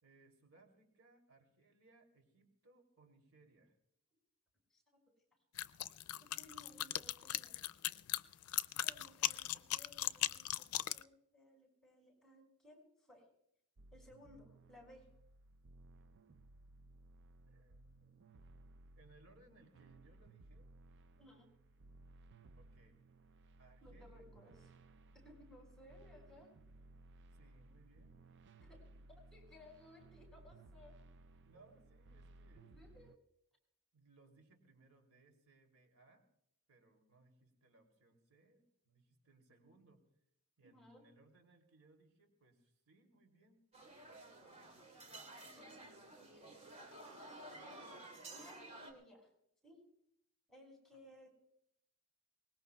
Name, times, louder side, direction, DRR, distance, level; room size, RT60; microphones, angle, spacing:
voice 1, 0.0-3.8 17.4-18.2 19.0-20.7 22.6-23.1 23.6-24.2 27.3-28.2 31.4-32.6 33.9-36.2 36.7-40.0 40.6-43.6 50.9-51.0, right 3 dB, 80° right, 4 dB, 2.9 m, -67 dB
sound 1, 5.6-11.0, left 14 dB, 90° left, 0.4 m, -38 dB
voice 2, 6.3-7.6 8.8-13.3 13.9-15.1 21.2-21.5 23.8-24.5 25.2-26.5 28.6-28.7 29.1-30.9 31.5-31.6 32.5-33.1 40.6-41.0 45.2-45.7 46.2-46.6 47.4-49.3 49.6-49.8 50.5-51.3, left 1 dB, ahead, 0 dB, 5.9 m, -61 dB
sound 2, 13.8-33.2, right 2 dB, 55° right, 0.5 m, -61 dB
sound 3, 43.7-48.9, right 2 dB, 30° right, 3.0 m, -53 dB
23.5 x 20.5 x 2.3 m, 0.74 s
head